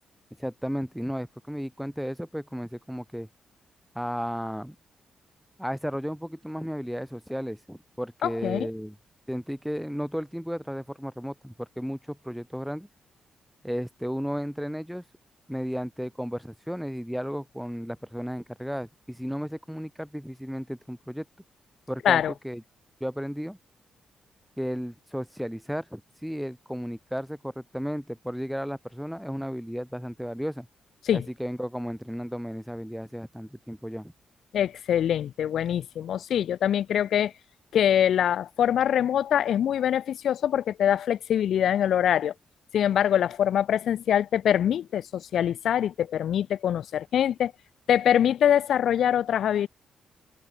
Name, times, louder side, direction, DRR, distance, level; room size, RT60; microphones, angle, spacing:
voice 1, 0.4-3.3 3.9-4.8 5.6-8.9 9.3-12.9 13.6-15.0 15.5-21.2 21.9-22.6 23.0-23.6 24.6-30.7 31.1-34.1, equal, ahead, 0.5 m, -34 dB
voice 2, 8.2-8.7 22.0-22.3 31.0-31.2 34.5-37.3 37.7-42.3 42.7-47.5 47.9-49.7, left 10 dB, 75° left, 0.6 m, -24 dB
cardioid pair, 90°, 0 cm